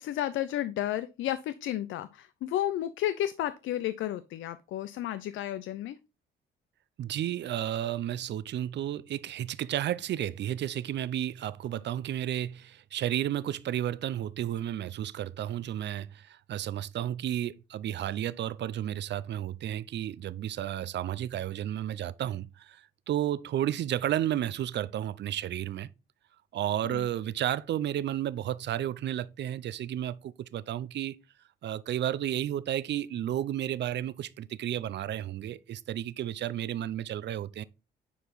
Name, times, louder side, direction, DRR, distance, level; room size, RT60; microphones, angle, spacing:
voice 1, 0.0-6.0 26.8-27.1, left 12 dB, 80° left, 0.6 m, -32 dB
voice 2, 7.0-25.9 26.5-31.2 31.6-37.6, right 11 dB, 60° right, 0.6 m, -32 dB
10.0 x 4.7 x 4.0 m
cardioid pair, 90°, 20 cm